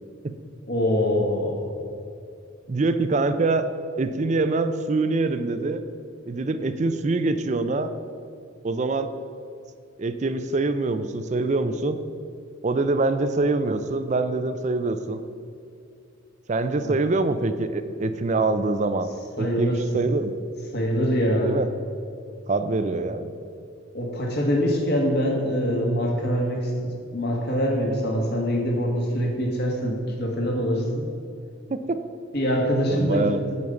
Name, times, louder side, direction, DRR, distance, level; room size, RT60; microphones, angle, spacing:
voice 1, 0.7-1.7 16.8-16.9 19.4-19.8 20.7-21.6 23.9-31.1 32.3-33.6, equal, 50° left, 0 dB, 1.8 m, -24 dB
voice 2, 2.7-3.7 4.0-5.8 6.3-7.9 8.6-9.1 10.0-12.0 12.6-15.2 16.5-19.1 19.4-20.3 21.4-21.7 22.5-23.4 31.7-32.0 32.9-33.4, right 3 dB, 35° right, 10 dB, 0.4 m, -24 dB
9.5 x 5.2 x 7.0 m, 2.5 s
head